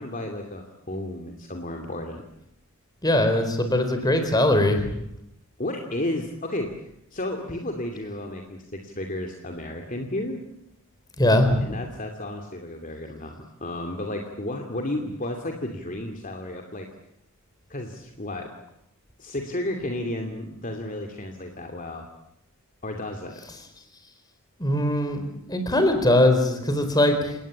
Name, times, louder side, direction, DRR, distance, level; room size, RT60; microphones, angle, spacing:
voice 1, 0.0-2.2 5.6-6.7 7.1-10.4 11.6-16.9 17.7-18.5 19.2-22.1 22.8-23.4, left 1 dB, 40° left, 3 dB, 2.6 m, -32 dB
voice 2, 3.0-4.9 11.2-11.7 24.6-27.4, left 1 dB, 20° left, 7 dB, 4.4 m, -21 dB
29.5 x 19.0 x 8.8 m, 0.82 s
head